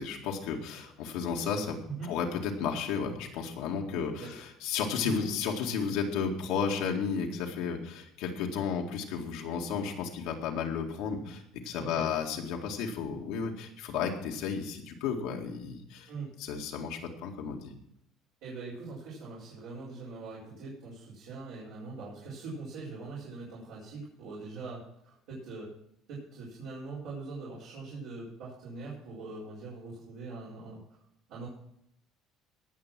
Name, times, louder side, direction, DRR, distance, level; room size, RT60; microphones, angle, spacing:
voice 1, 0.0-1.8 2.0-16.1 16.4-17.7, left 6 dB, 80° left, 1 dB, 2.0 m, -33 dB
voice 2, 11.8-12.1 16.1-16.3 18.4-25.7 26.1-30.8 31.3-31.5, right 3 dB, 80° right, -9 dB, 4.7 m, -42 dB
18.0 x 6.2 x 6.0 m, 0.76 s
supercardioid pair, 100°, 0 cm